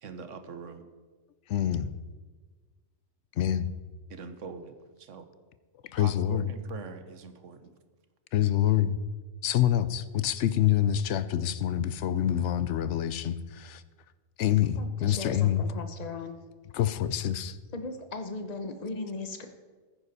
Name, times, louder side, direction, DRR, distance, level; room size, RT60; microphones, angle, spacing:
voice 1, 0.0-0.9 4.1-5.3 6.0-7.7, right 5 dB, 90° right, 9 dB, 1.3 m, -43 dB
voice 2, 1.5-1.9 3.4-3.7 5.9-6.5 8.3-9.0 9.4-13.8 14.4-15.6 16.7-17.6, left 11 dB, 75° left, 14 dB, 0.9 m, -26 dB
voice 3, 14.8-16.4 17.7-19.5, left 3 dB, 35° left, 7 dB, 1.0 m, -37 dB
15.0 x 10.0 x 4.2 m, 1.4 s
omnidirectional pair, 1.2 m